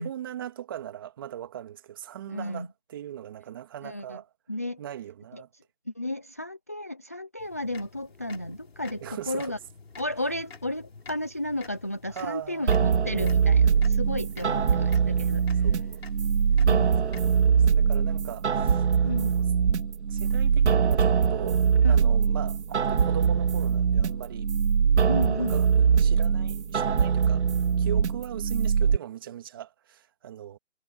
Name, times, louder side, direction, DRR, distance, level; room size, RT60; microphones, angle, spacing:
voice 1, 0.0-4.3 4.8-5.5 9.0-9.5 12.2-12.8 14.4-15.2 15.6-16.0 17.2-19.4 20.1-24.5 25.5-27.4 27.8-30.6, right 11 dB, 20° right, 2.4 m, -40 dB
voice 2, 2.3-2.7 3.8-4.2 4.5-4.8 5.3-9.6 10.0-15.7 16.6-17.0 19.0-19.3 21.8-22.0 25.1-25.6, left 1 dB, 15° left, 0.6 m, -33 dB
sound 1, 7.4-17.5, left 4 dB, 65° left, 4.4 m, -50 dB
sound 2, 12.7-29.0, right 6 dB, 90° right, 0.7 m, -23 dB
hypercardioid pair, 170°, 33 cm